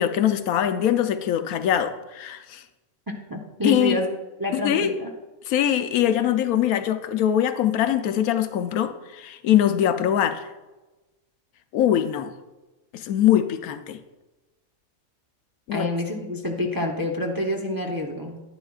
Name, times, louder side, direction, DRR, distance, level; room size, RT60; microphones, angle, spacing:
voice 1, 0.0-2.6 3.6-4.0 4.5-4.9 5.5-10.5 11.7-12.3 12.9-14.0 15.7-15.9, left 10 dB, 85° left, 10 dB, 1.1 m, -22 dB
voice 2, 3.3-4.1 4.4-5.1 15.7-18.4, left 1 dB, 20° right, 1 dB, 0.6 m, -27 dB
11.0 x 10.0 x 2.4 m, 1.1 s
omnidirectional pair, 1.5 m